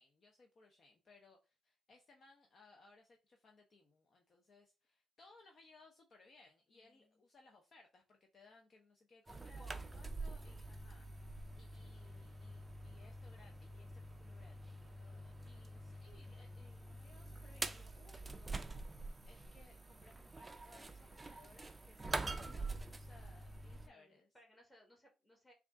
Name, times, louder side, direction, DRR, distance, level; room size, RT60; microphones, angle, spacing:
voice 1, 0.0-24.3, left 3 dB, 45° left, 0.6 m, -65 dB
voice 2, 6.7-7.2 9.4-10.0 23.7-25.5, equal, 15° left, 1.4 m, -65 dB
sound 1, 9.3-23.9, right 2 dB, 20° right, 0.4 m, -46 dB
3.5 x 2.4 x 3.5 m
cardioid pair, 90°, 0 cm